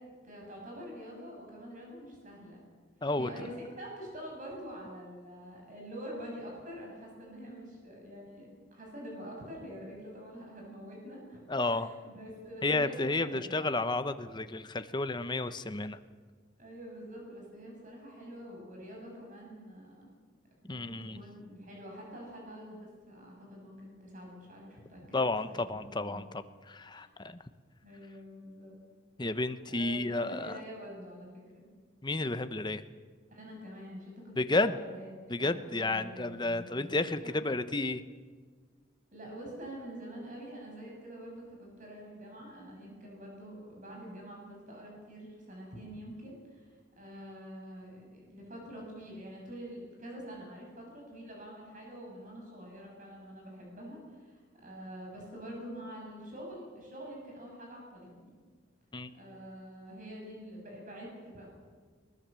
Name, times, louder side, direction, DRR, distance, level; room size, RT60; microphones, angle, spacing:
voice 1, 0.2-2.6 3.1-13.7 16.6-20.1 20.6-26.3 26.9-27.0 27.8-28.8 29.7-31.7 33.3-37.5 39.1-58.4 59.1-61.5, equal, 40° right, -1 dB, 6.8 m, -46 dB
voice 2, 11.5-11.9 12.6-16.0 20.7-21.2 25.1-27.4 29.2-30.6 32.0-32.8 34.4-34.8 35.3-38.0 58.9-59.1, left 2 dB, 20° left, 11 dB, 0.8 m, -31 dB
20.5 x 20.5 x 7.6 m, 1.5 s
head